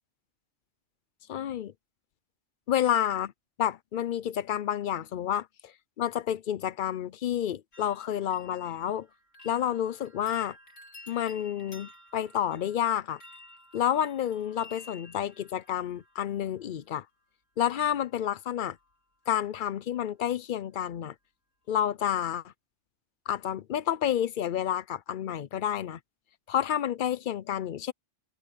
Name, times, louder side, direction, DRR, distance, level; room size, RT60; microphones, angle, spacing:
voice 1, 1.3-1.7 2.7-3.3 3.6-9.1 9.4-10.6 11.1-13.2 13.7-17.0 17.6-18.8 19.3-21.1 21.7-22.4 23.3-26.0 26.5-27.9, left 10 dB, 55° left, 0.6 m, -29 dB
sound 1, 7.7-16.7 17.6-18.1 18.4-18.9 19.2-19.3, left 2 dB, 80° left, 3.3 m, -53 dB
omnidirectional pair, 1.3 m